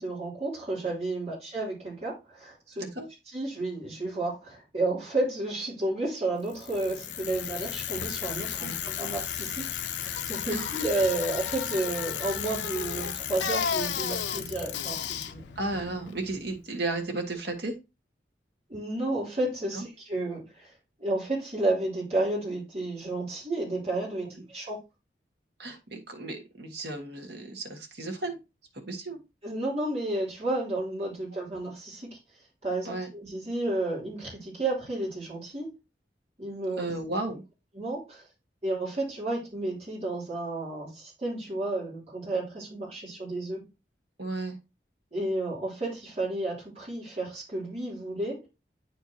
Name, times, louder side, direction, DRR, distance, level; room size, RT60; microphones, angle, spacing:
voice 1, 0.0-2.8 3.3-15.0 15.2-15.4 18.7-20.7 21.0-24.8 29.4-32.2 32.6-35.7 36.4-36.9 37.7-38.3 38.6-43.7 45.1-48.5, right 2 dB, 35° right, -5 dB, 3.3 m, -31 dB
Bicycle, 6.5-16.6, left 8 dB, 85° left, 0.6 m, -33 dB
voice 2, 10.5-10.8 15.5-17.8 19.7-19.9 25.6-28.4 28.7-29.2 31.3-31.4 32.8-33.1 36.8-37.4 44.2-44.6, right 2 dB, 70° right, 4 dB, 1.6 m, -34 dB
9.1 x 4.5 x 2.8 m, 0.25 s
head